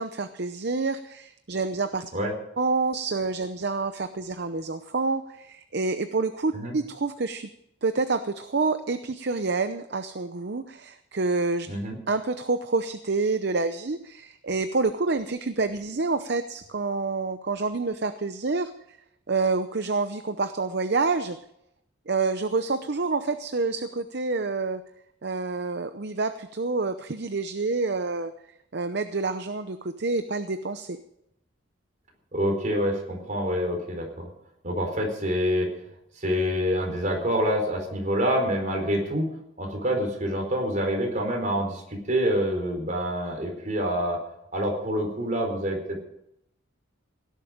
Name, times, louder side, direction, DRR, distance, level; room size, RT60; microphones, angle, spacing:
voice 1, 0.0-2.1 2.6-7.5 7.8-11.7 12.1-19.0 19.3-21.4 22.1-24.8 25.2-28.3 28.7-31.0, right 3 dB, 55° right, 10 dB, 0.7 m, -28 dB
voice 2, 11.7-12.0 32.3-34.3 34.6-35.7 36.2-39.3 39.6-41.8 42.1-44.2 44.5-46.1, equal, 40° right, 2 dB, 4.4 m, -26 dB
17.5 x 11.5 x 5.1 m, 0.78 s
head